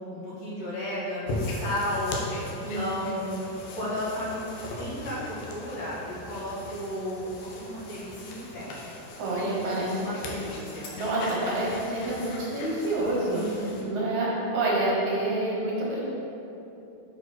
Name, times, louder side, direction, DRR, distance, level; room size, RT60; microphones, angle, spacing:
voice 1, 0.1-2.2 2.5-4.4 4.7-5.2 5.5-8.8 9.4-11.0 13.3-13.9, left 1 dB, 55° left, -9 dB, 2.6 m, -34 dB
sound 1, 1.3-13.8, left 1 dB, 85° left, 2.8 m, -39 dB
voice 2, 2.6-3.0 9.2-10.1 10.9-16.0, right 2 dB, 60° right, -5 dB, 2.3 m, -28 dB
7.4 x 4.0 x 6.0 m, 2.9 s
omnidirectional pair, 4.2 m